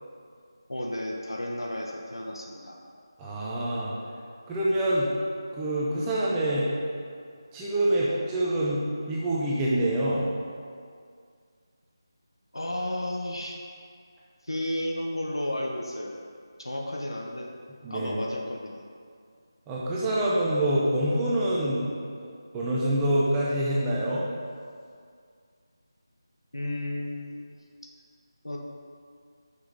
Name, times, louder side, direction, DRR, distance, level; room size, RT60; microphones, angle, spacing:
voice 1, 0.7-2.8 12.5-13.7 14.4-16.2 16.6-17.5 17.9-18.8 26.5-27.6 28.4-28.6, left 1 dB, 85° left, 0 dB, 1.2 m, -33 dB
voice 2, 3.2-3.9 4.5-5.1 5.5-6.7 7.5-10.3 17.8-18.1 19.7-21.9 22.2-24.2, right 1 dB, 10° right, -7 dB, 0.9 m, -26 dB
6.6 x 5.9 x 5.2 m, 2.2 s
figure-of-eight pair, 165°, 2 cm